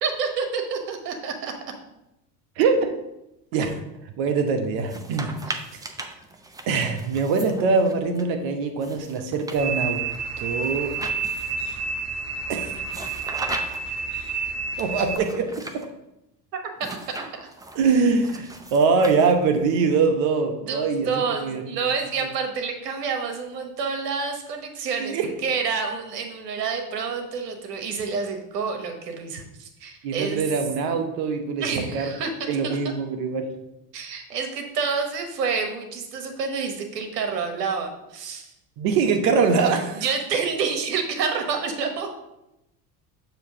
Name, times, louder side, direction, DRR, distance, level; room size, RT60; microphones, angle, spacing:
voice 1, 0.0-1.5 5.5-5.6 16.5-17.0 20.7-30.4 31.6-32.9 33.9-38.5 39.9-42.1, right 5 dB, 85° right, 5 dB, 1.2 m, -28 dB
voice 2, 2.6-3.0 3.5-3.8 4.2-5.3 6.7-10.0 10.4-10.9 12.5-12.7 14.8-15.5 15.7-15.8 17.7-21.1 21.4-21.6 25.0-25.3 30.0-32.1 32.5-33.5 38.8-40.0, right 4 dB, 60° right, 5 dB, 1.2 m, -23 dB
sound 1, 4.8-8.2 8.8-11.7 12.9-14.0 14.8-15.9 16.8-19.6, right 2 dB, 10° right, 0.6 m, -38 dB
sound 2, 9.6-15.2, right 5 dB, 30° right, 0.9 m, -29 dB
6.8 x 3.0 x 5.9 m, 0.89 s
hypercardioid pair, 80°, 47 cm